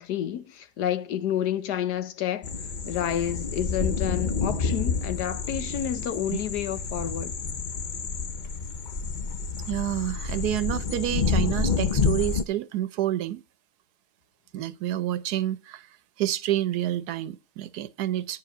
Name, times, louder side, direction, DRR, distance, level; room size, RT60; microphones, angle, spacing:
voice 1, 0.0-2.5 2.9-7.3, left 10 dB, 85° left, 1.4 m, -29 dB
sound 1, 2.4-12.4, left 5 dB, 50° left, 0.5 m, -29 dB
voice 2, 9.7-13.4 14.5-15.9 16.2-18.4, right 13 dB, 75° right, 1.3 m, -28 dB
10.0 x 4.9 x 6.5 m
omnidirectional pair, 1.7 m